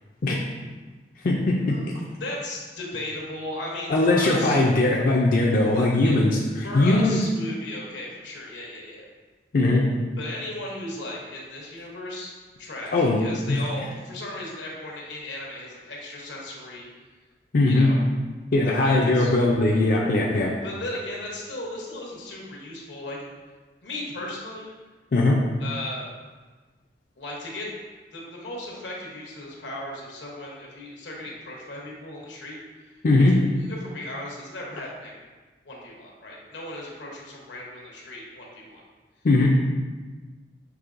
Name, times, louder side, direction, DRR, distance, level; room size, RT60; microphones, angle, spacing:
voice 1, 1.2-1.7 3.9-6.4 6.7-7.2 9.5-9.8 12.9-13.2 13.5-13.6 17.5-17.9 18.5-20.5 25.1-25.4 33.0-33.3 39.2-39.5, left 2 dB, 50° left, -3 dB, 0.4 m, -20 dB
voice 2, 2.2-4.6 6.0-6.2 6.6-9.1 10.2-12.3 12.6-16.9 17.7-18.0 18.7-19.3 20.3-23.2 23.8-24.7 25.6-26.1 27.2-27.7 28.1-32.6 32.8-35.2 35.6-38.8, left 1 dB, 90° left, -2 dB, 1.0 m, -36 dB
6.0 x 3.0 x 2.5 m, 1.3 s
head